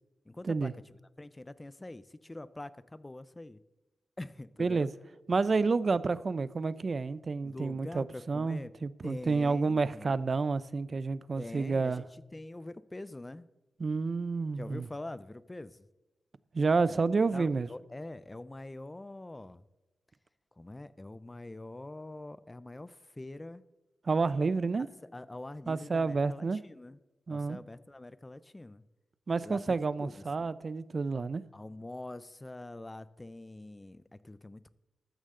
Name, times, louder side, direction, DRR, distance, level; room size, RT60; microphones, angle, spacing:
voice 1, 0.3-0.7 1.2-3.6 4.2-4.9 7.4-8.7 9.0-10.2 11.4-13.4 14.5-15.9 16.9-17.0 17.3-19.6 20.6-23.6 25.0-27.0 27.3-28.8 29.4-30.5 31.5-34.7, left 2 dB, 20° left, 15 dB, 0.6 m, -44 dB
voice 2, 4.6-4.9 5.3-12.0 13.8-14.9 16.5-17.7 24.0-24.9 25.7-26.6 27.3-27.6 29.3-31.4, right 4 dB, 45° right, 16 dB, 0.5 m, -29 dB
14.0 x 13.0 x 3.8 m, 1.1 s
wide cardioid pair, 105°, 0 cm